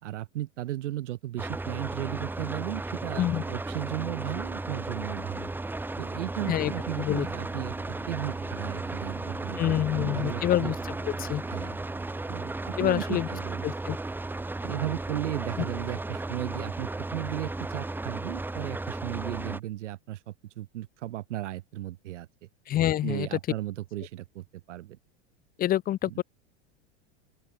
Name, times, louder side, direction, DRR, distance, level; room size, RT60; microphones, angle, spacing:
voice 1, 0.0-5.5 6.0-10.7 11.5-11.8 12.3-13.7 14.6-22.5 23.0-25.0 26.1-26.2, right 14 dB, 90° right, 2.1 m, -36 dB
sound 1, 1.4-19.6, right 2 dB, 5° right, 2.5 m, -35 dB
sound 2, 6.4-13.8, right 22 dB, 60° right, 2.4 m, -49 dB
voice 2, 9.6-10.7 11.0-11.4 12.8-13.3 13.6-14.0 15.6-15.7 22.7-23.4 25.6-26.2, left 12 dB, 25° left, 1.1 m, -27 dB
open air
supercardioid pair, 150°, 35 cm